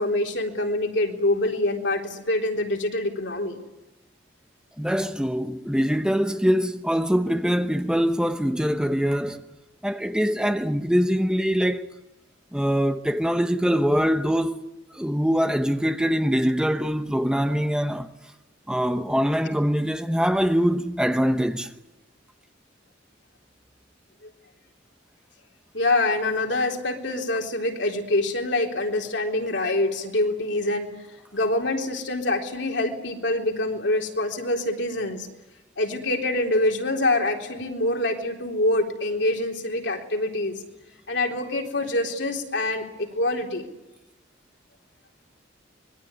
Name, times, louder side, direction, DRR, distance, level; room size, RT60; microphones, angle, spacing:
voice 1, 0.0-3.6 24.2-24.3 25.7-30.9 31.3-35.3 35.8-40.5 41.1-43.7, left 2 dB, 65° left, 3.8 m, -25 dB
voice 2, 4.8-9.4 9.8-11.9 12.5-18.1 18.7-21.7, equal, 5° right, 1.0 m, -23 dB
25.5 x 22.0 x 9.8 m
head